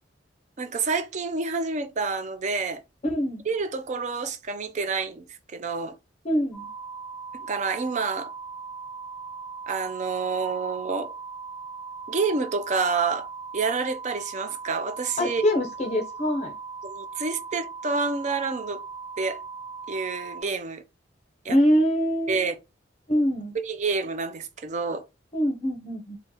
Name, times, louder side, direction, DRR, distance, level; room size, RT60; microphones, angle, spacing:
voice 1, 0.6-2.8 3.5-6.0 7.3-8.3 9.7-11.1 12.1-13.3 13.5-15.4 16.8-18.8 19.2-19.4 19.9-20.8 21.4-21.6 22.3-22.5 23.6-25.0, right 4 dB, 40° right, 0.4 m, -28 dB
voice 2, 3.0-3.4 6.2-6.7 15.2-16.5 21.5-22.4 23.1-23.5 25.3-26.2, equal, 35° left, 0.5 m, -24 dB
sound 1, 6.5-20.4, right 5 dB, 5° right, 0.8 m, -39 dB
2.8 x 2.1 x 3.6 m
head